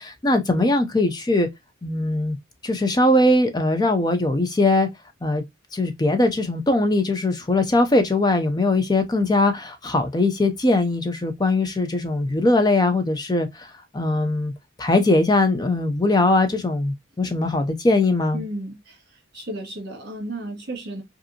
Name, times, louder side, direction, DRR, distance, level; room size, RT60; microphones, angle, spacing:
voice 1, 0.0-1.5 1.8-2.4 2.6-4.9 5.2-5.4 5.7-14.5 14.8-18.4, left 2 dB, 20° left, 0.5 m, -21 dB
voice 2, 18.3-21.0, right 1 dB, 50° right, 1.9 m, -34 dB
5.0 x 2.6 x 2.7 m
head